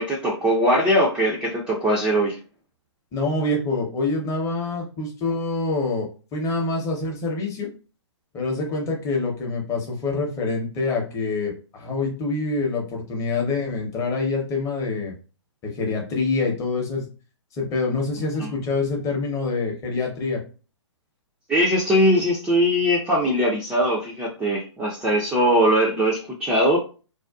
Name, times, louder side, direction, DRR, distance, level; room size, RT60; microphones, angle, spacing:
voice 1, 0.0-2.4 18.4-18.5 21.5-26.8, equal, 5° right, -5 dB, 0.4 m, -21 dB
voice 2, 3.1-7.7 8.3-15.1 15.6-17.1 17.6-20.4, left 3 dB, 20° left, 0 dB, 0.7 m, -26 dB
2.5 x 2.2 x 2.3 m, 0.34 s
hypercardioid pair, 130°, 16 cm